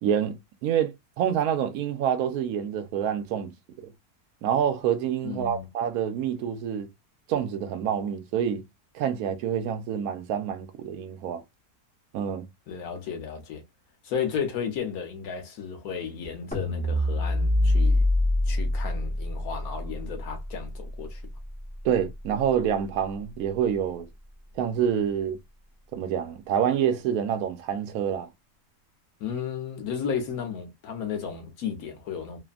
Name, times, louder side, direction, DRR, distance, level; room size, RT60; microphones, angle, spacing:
voice 1, 0.0-3.5 4.4-6.9 7.3-8.6 8.9-11.4 12.1-12.5 21.8-24.1 24.6-25.4 25.9-28.3, right 9 dB, 70° right, 1.1 m, -27 dB
voice 2, 5.2-5.7 12.7-13.6 14.0-18.0 18.5-21.2 29.2-32.4, left 7 dB, 65° left, 1.4 m, -33 dB
sound 1, 16.5-22.8, left 1 dB, 10° left, 0.5 m, -26 dB
3.3 x 2.1 x 2.3 m
omnidirectional pair, 1.7 m